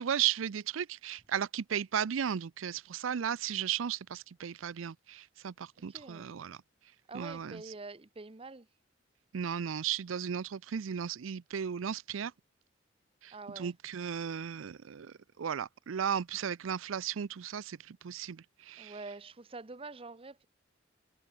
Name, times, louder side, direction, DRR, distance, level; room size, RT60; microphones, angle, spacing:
voice 1, 0.0-6.6 7.1-7.7 9.3-12.3 13.2-19.0, right 8 dB, 85° right, 0.5 m, -35 dB
voice 2, 5.9-6.3 7.1-8.7 13.3-13.7 18.8-20.5, right 3 dB, 30° right, 0.8 m, -46 dB
head